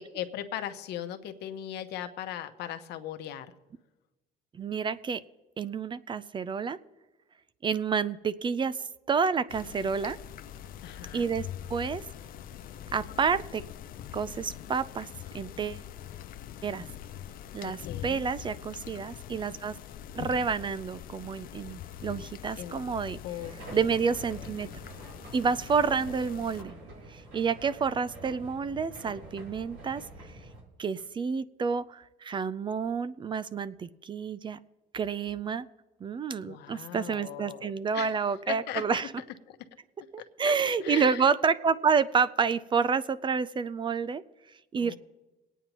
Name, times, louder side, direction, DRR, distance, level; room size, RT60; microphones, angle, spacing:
voice 1, 0.0-3.5 10.8-11.3 17.6-18.2 22.6-22.9 23.2-23.9 36.4-38.1 38.5-39.0 39.5-39.6 40.4-40.5 40.8-41.3 44.8-45.0, left 11 dB, 80° left, 8 dB, 0.9 m, -38 dB
voice 2, 4.5-5.2 5.6-6.8 7.6-8.8 9.1-10.2 11.1-12.0 12.9-13.6 14.1-15.1 15.3-15.8 16.6-16.9 17.5-19.7 20.1-23.2 23.7-24.7 25.3-26.7 27.1-30.0 30.8-34.6 34.9-35.7 36.0-39.1 40.1-44.2 44.7-45.0, right 5 dB, 30° right, 16 dB, 0.4 m, -29 dB
sound 1, 9.5-26.6, left 11 dB, 60° left, 0.5 m, -43 dB
sound 2, 23.4-30.6, right 1 dB, 85° right, 4.2 m, -47 dB
23.0 x 9.1 x 3.0 m, 1.1 s
cardioid pair, 110°, 17 cm